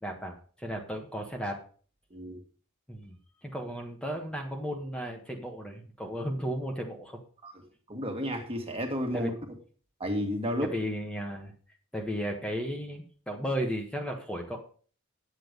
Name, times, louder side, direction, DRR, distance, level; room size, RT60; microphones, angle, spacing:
voice 1, 0.0-1.6 2.9-3.2 3.4-7.2 9.1-9.3 10.6-11.5 11.9-14.6, equal, 5° left, 1.3 m, -34 dB
voice 2, 7.9-9.3 10.0-10.7, equal, 30° right, 2.1 m, -32 dB
10.0 x 8.2 x 5.2 m
head